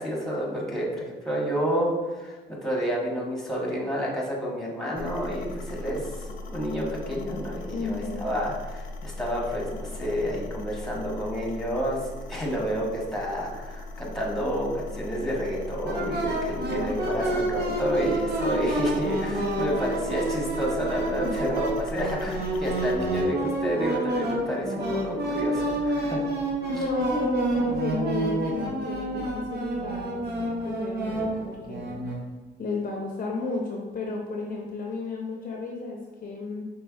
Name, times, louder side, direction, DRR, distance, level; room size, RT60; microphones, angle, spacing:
voice 1, 0.0-26.3, equal, ahead, -3 dB, 1.2 m, -30 dB
sound 1, 4.9-23.2, left 2 dB, 85° left, 0.5 m, -38 dB
voice 2, 7.7-8.2 21.2-21.3 26.7-30.3 30.6-32.0 32.6-36.7, left 3 dB, 45° left, 0 dB, 0.6 m, -32 dB
sound 2, 15.9-32.2, right 1 dB, 55° right, 0.8 m, -29 dB
5.2 x 3.3 x 2.4 m, 1.3 s
cardioid pair, 90°, 20 cm